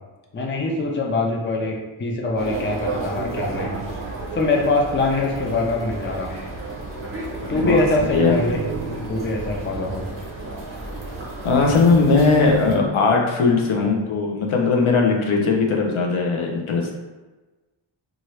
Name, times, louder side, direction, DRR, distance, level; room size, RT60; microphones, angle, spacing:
voice 1, 0.3-3.7 4.3-6.3 7.5-8.6 9.1-10.1 13.8-13.9, left 2 dB, 25° left, -1 dB, 0.4 m, -23 dB
sound 1, 2.4-12.7, right 3 dB, 25° right, 0.8 m, -31 dB
voice 2, 11.4-16.9, left 4 dB, 75° left, 0 dB, 0.7 m, -19 dB
2.8 x 2.5 x 3.1 m, 1.2 s
wide cardioid pair, 95°, 50 cm